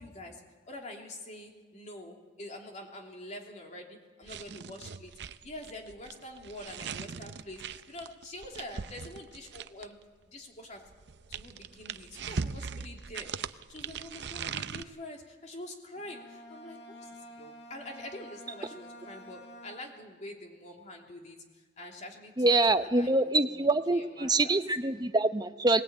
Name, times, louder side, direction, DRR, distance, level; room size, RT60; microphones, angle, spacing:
voice 1, 0.0-10.9 11.3-24.6, left 1 dB, 40° left, 1 dB, 3.0 m, -46 dB
sound 1, 4.2-10.0 10.9-14.8, right 6 dB, 65° right, 0.6 m, -40 dB
Bowed string instrument, 16.0-20.2, equal, 65° left, 2.0 m, -49 dB
voice 2, 22.4-25.8, right 2 dB, 20° right, 9 dB, 0.8 m, -25 dB
21.5 x 19.0 x 8.8 m, 1.4 s
head